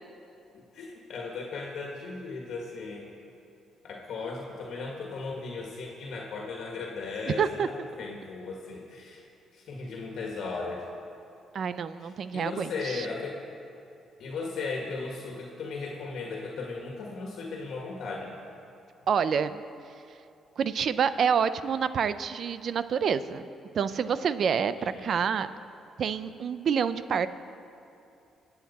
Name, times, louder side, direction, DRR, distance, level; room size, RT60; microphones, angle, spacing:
voice 1, 0.5-3.1 3.8-9.2 9.5-10.9 12.0-13.4 14.2-18.4 24.8-25.2, left 4 dB, 70° left, -1 dB, 1.7 m, -37 dB
voice 2, 7.4-7.7 11.5-13.1 19.1-19.6 20.6-23.5 23.7-25.5 26.0-27.3, right 7 dB, 60° right, 13 dB, 0.5 m, -27 dB
22.5 x 8.1 x 4.2 m, 2.6 s
cardioid pair, 90°, 0 cm